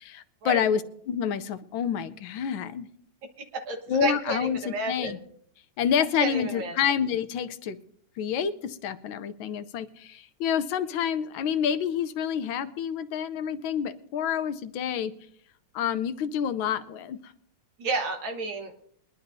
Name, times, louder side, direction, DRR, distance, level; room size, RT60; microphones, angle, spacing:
voice 1, 0.0-2.9 3.9-5.2 5.8-7.8 8.2-15.1 15.7-17.3, left 8 dB, 85° left, 11 dB, 1.5 m, -28 dB
voice 2, 3.5-5.2 6.2-6.7 17.8-18.7, right 2 dB, 85° right, 4 dB, 2.2 m, -31 dB
22.5 x 11.0 x 2.7 m, 0.65 s
omnidirectional pair, 2.1 m